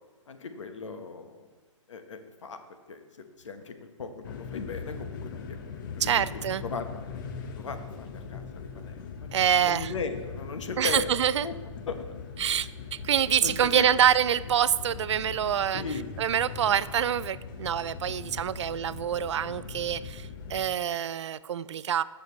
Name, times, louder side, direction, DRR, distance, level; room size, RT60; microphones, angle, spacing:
voice 1, 0.3-1.5 1.9-2.6 2.9-3.0 3.4-5.6 6.0-6.2 6.6-7.0 7.5-11.1 11.4-11.5 11.9-12.0 13.4-13.9 15.7-16.1 16.6-16.7, left 4 dB, 70° left, 8 dB, 1.1 m, -37 dB
sound 1, 4.2-20.7, left 5 dB, 40° left, 0.8 m, -40 dB
voice 2, 6.0-6.6 9.3-9.9 10.8-11.5 12.4-15.8 16.2-22.0, right 9 dB, 65° right, 17 dB, 0.4 m, -26 dB
14.0 x 6.6 x 3.1 m, 1.3 s
hypercardioid pair, 135°, 16 cm